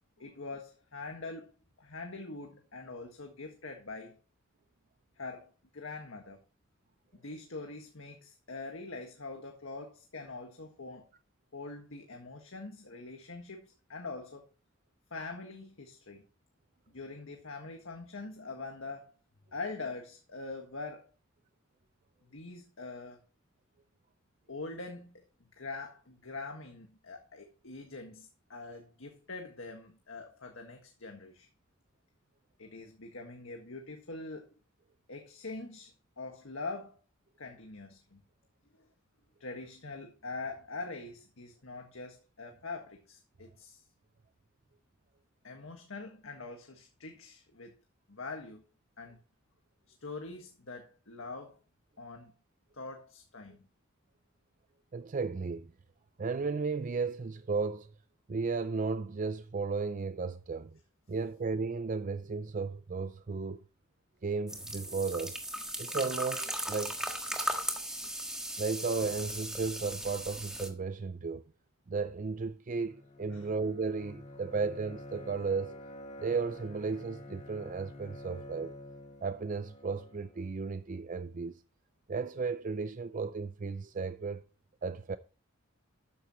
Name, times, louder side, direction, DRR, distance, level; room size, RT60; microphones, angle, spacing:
voice 1, 0.2-1.5 1.8-4.2 5.2-6.4 7.1-11.1 11.5-14.5 15.1-16.2 16.9-19.1 19.5-21.1 22.3-23.2 24.5-25.2 25.6-31.5 32.6-34.5 35.1-37.0 37.4-38.2 38.8-38.9 39.4-43.8 45.4-47.7 48.1-48.7 49.0-49.2 50.0-51.6 52.0-52.3 52.7-53.6 73.3-73.5, left 3 dB, 85° left, 1.7 m, -43 dB
voice 2, 54.9-55.7 56.2-57.9 58.3-60.8 61.1-63.6 64.2-65.4 65.8-67.0 68.6-71.4 71.9-75.8 76.2-78.7 79.2-81.5 82.1-84.4 84.8-85.2, right 4 dB, 40° right, 0.4 m, -34 dB
sound 1, 64.5-70.7, right 1 dB, 5° right, 1.5 m, -37 dB
Bowed string instrument, 72.7-80.5, left 1 dB, 35° left, 2.0 m, -49 dB
13.0 x 9.5 x 3.0 m
head